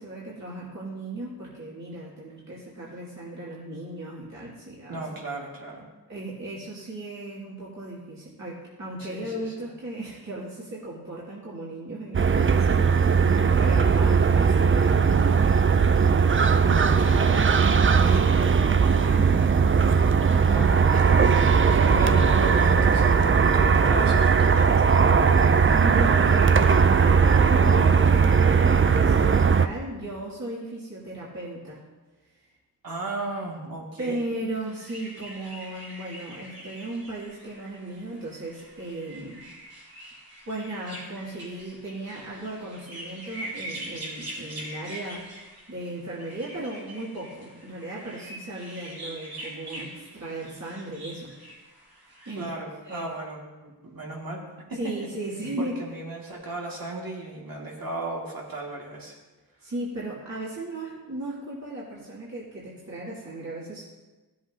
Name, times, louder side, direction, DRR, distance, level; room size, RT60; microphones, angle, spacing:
voice 1, 0.0-5.0 6.1-16.0 17.9-18.6 21.6-21.9 25.6-31.8 34.0-39.4 40.5-51.3 52.2-52.4 52.8-53.1 54.7-55.7 59.6-63.8, right 2 dB, 50° right, -7 dB, 2.7 m, -36 dB
voice 2, 4.9-5.8 9.0-9.7 16.6-17.4 18.0-19.6 19.9-24.9 32.8-34.2 52.4-54.4 54.7-55.0 55.6-59.2, right 2 dB, 65° right, -2 dB, 2.5 m, -35 dB
sound 1, 12.1-29.7, right 6 dB, 35° right, 0.5 m, -19 dB
sound 2, 34.5-52.4, right 1 dB, 85° right, 3.1 m, -43 dB
16.5 x 7.7 x 2.9 m, 1.2 s
cardioid pair, 60°, 37 cm